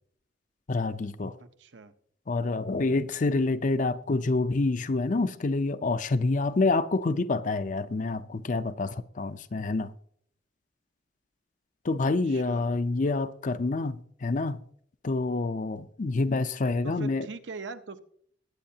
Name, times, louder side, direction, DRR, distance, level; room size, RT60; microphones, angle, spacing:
voice 1, 0.7-1.3 2.3-9.9 11.8-14.6 15.0-17.3, left 3 dB, 45° left, 0.5 m, -27 dB
voice 2, 1.4-1.9 12.0-12.7 16.8-18.0, right 3 dB, 75° right, 0.8 m, -42 dB
22.0 x 8.6 x 2.8 m
head